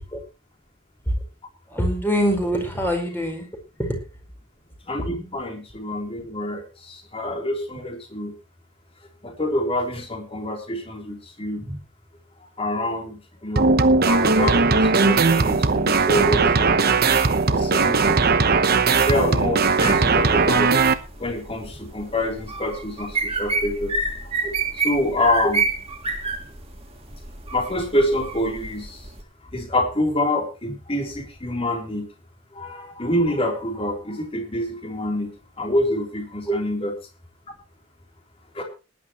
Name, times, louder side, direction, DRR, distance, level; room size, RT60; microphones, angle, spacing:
voice 1, 1.7-3.5 3.8-3.9 36.4-36.6, equal, 10° left, 3 dB, 4.6 m, -23 dB
voice 2, 4.9-8.3 9.2-11.8 12.6-16.9 17.5-18.2 18.9-20.8 21.2-23.9 24.8-25.6 27.5-29.0 29.5-32.1 32.5-35.3 35.6-36.9 38.5-38.6, left 1 dB, 30° left, 3 dB, 3.6 m, -26 dB
sound 1, 13.6-20.9, right 4 dB, 50° right, 1.0 m, -18 dB
sound 2, 19.8-29.2, right 3 dB, 30° right, 2.5 m, -28 dB
19.5 x 11.0 x 3.1 m, 0.31 s
head